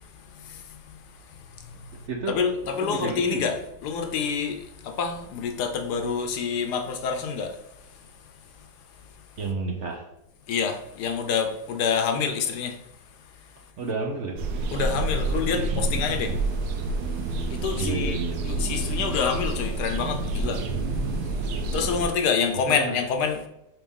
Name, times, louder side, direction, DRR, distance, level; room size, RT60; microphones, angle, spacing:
voice 1, 0.0-1.9 2.3-3.6 3.8-8.0 8.6-8.7 10.5-12.8 14.7-16.5 17.5-18.2 18.4-20.7 21.7-23.4, left 6 dB, 75° left, 1.3 m, -27 dB
voice 2, 2.1-2.4 2.8-3.5 9.4-10.1 13.8-14.4 15.5-15.8 17.7-18.4 22.7-23.0, right 4 dB, 55° right, 0.9 m, -31 dB
sound 1, 14.4-22.1, right 2 dB, 70° right, 1.2 m, -28 dB
4.7 x 4.0 x 5.1 m
omnidirectional pair, 1.8 m